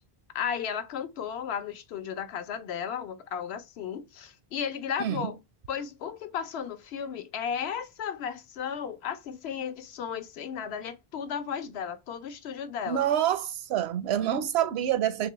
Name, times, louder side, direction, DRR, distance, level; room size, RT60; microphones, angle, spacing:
voice 1, 0.3-5.4 5.7-13.1, left 7 dB, 75° left, 0.9 m, -34 dB
voice 2, 5.0-5.3 12.9-15.3, right 10 dB, 80° right, 0.8 m, -27 dB
4.0 x 2.9 x 2.9 m
omnidirectional pair, 1.1 m